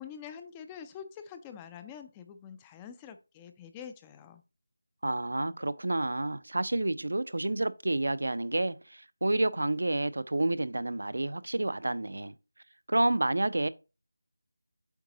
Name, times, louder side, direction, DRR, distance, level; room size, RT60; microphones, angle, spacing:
voice 1, 0.0-4.4, left 8 dB, 10° left, 0.4 m, -46 dB
voice 2, 5.0-12.3 12.9-13.7, right 2 dB, 75° right, 0.6 m, -29 dB
8.2 x 3.9 x 3.8 m
figure-of-eight pair, 170°, 0 cm